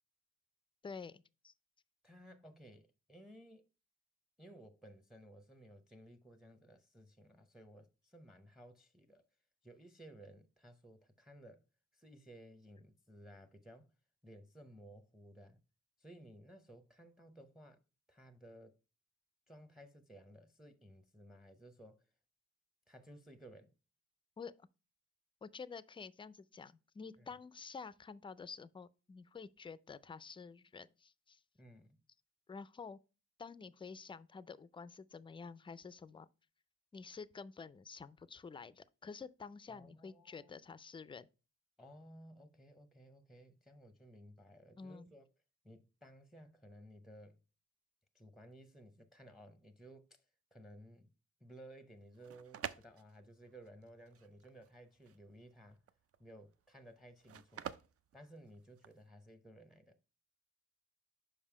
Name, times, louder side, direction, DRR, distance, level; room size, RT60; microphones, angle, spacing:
voice 1, 0.8-1.5 24.4-24.7 25.4-31.4 32.5-33.0 33.4-36.3 36.9-41.3 44.8-45.1, left 5 dB, 20° left, 0.3 m, -50 dB
voice 2, 2.0-3.7 4.4-9.2 9.6-11.6 11.9-13.9 14.2-15.6 16.0-17.8 18.1-18.8 19.5-22.0 22.9-23.7 27.2-27.3 31.5-32.0 39.7-40.5 41.8-45.3 45.6-47.4 48.1-50.3 50.5-51.1 51.4-55.8 56.2-57.7 58.1-60.0, right 1 dB, ahead, 0.7 m, -57 dB
sound 1, 52.0-59.1, right 8 dB, 55° right, 0.5 m, -49 dB
5.4 x 5.1 x 4.8 m
cardioid pair, 85°, 29 cm